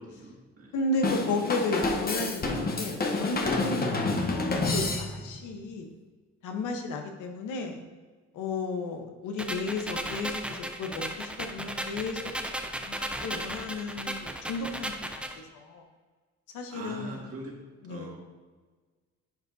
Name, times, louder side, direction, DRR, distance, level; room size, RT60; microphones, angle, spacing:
voice 1, 0.0-0.7 16.7-17.5 17.9-18.2, right 1 dB, 50° right, -1 dB, 1.9 m, -42 dB
voice 2, 0.7-5.9 6.4-7.8 8.3-15.8 16.5-17.2 17.8-18.2, left 3 dB, 85° left, 4 dB, 1.0 m, -34 dB
Drum kit / Drum, 1.0-5.4, left 3 dB, 30° left, 0.9 m, -29 dB
sound 1, 9.4-15.4, right 1 dB, 5° right, 0.6 m, -36 dB
10.5 x 5.1 x 2.7 m, 1.4 s
cardioid pair, 90°, 30 cm